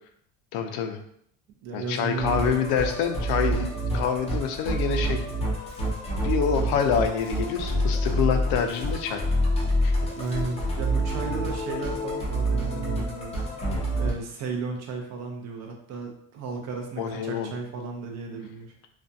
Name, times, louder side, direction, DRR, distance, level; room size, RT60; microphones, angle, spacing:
voice 1, 0.5-1.0 1.7-5.2 6.2-9.2 9.8-9.9 17.0-17.5, left 7 dB, 80° left, 6 dB, 0.5 m, -26 dB
voice 2, 1.6-2.9 10.0-18.7, right 4 dB, 45° right, 2 dB, 0.5 m, -35 dB
Musical instrument, 2.2-14.1, right 1 dB, 15° left, 0.5 m, -27 dB
2.5 x 2.2 x 2.6 m, 0.68 s
cardioid pair, 140°, 36 cm